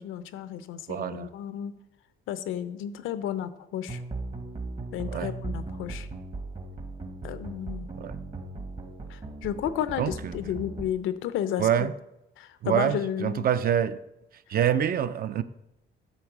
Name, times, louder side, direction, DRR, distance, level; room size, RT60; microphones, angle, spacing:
voice 1, 0.0-1.7 2.3-4.0 4.9-6.1 7.2-7.9 9.1-11.9 12.4-13.5, left 10 dB, 85° left, 13 dB, 0.5 m, -32 dB
voice 2, 0.9-1.3 5.1-5.3 8.0-8.2 10.0-10.3 11.6-11.9 12.6-14.0 14.5-15.4, right 9 dB, 50° right, 13 dB, 0.4 m, -26 dB
sound 1, 3.9-10.9, right 3 dB, 35° right, 1.0 m, -38 dB
8.4 x 3.2 x 6.0 m, 0.90 s
cardioid pair, 90°, 20 cm